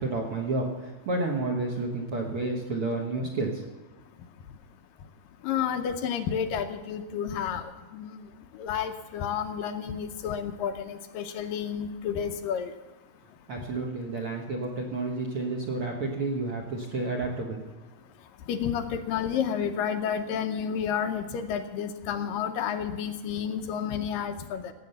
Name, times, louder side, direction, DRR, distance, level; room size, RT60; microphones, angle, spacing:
voice 1, 0.0-3.6 13.5-17.6, right 2 dB, 55° right, -1 dB, 1.6 m, -30 dB
voice 2, 5.4-8.2 8.6-12.7 18.5-24.7, left 8 dB, 75° left, 7 dB, 2.3 m, -31 dB
16.5 x 8.5 x 6.8 m, 1.2 s
omnidirectional pair, 4.2 m